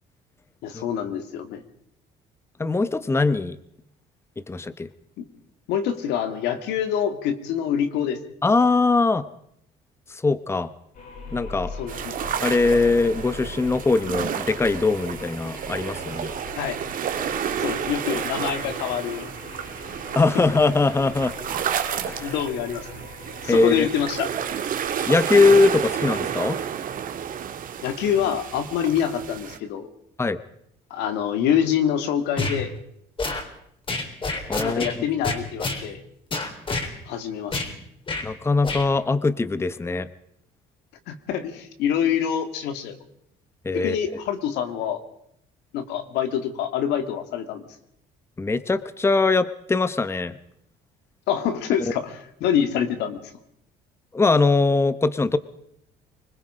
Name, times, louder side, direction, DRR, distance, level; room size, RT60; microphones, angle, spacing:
voice 1, 0.6-1.6 5.2-5.3 5.7-8.2 11.7-12.2 16.5-16.8 17.6-19.3 22.2-23.0 23.4-24.3 27.8-29.9 30.9-32.7 34.6-36.0 37.1-37.7 41.1-43.0 43.7-45.0 45.7-47.6 51.3-53.3, left 9 dB, 90° left, 8 dB, 2.4 m, -26 dB
voice 2, 2.6-3.6 4.4-4.9 8.4-9.3 10.1-10.7 11.3-11.7 12.4-16.3 20.1-21.3 22.0-22.3 23.5-23.9 25.1-26.6 30.2-30.4 34.5-35.0 38.2-40.1 43.6-44.0 48.4-50.4 54.1-55.4, left 3 dB, 15° left, 14 dB, 0.9 m, -21 dB
sound 1, 10.9-26.8, left 3 dB, 55° left, 6.9 m, -42 dB
sound 2, 11.9-29.6, right 8 dB, 55° right, 1.9 m, -31 dB
sound 3, 32.4-32.6 33.2-33.4 33.9-34.9 35.2-35.8 36.3-36.9 37.5-37.7 38.1-38.2 38.6-38.8, left 3 dB, 30° left, 3.7 m, -28 dB
24.5 x 21.0 x 5.0 m, 0.74 s
cardioid pair, 110°, 17 cm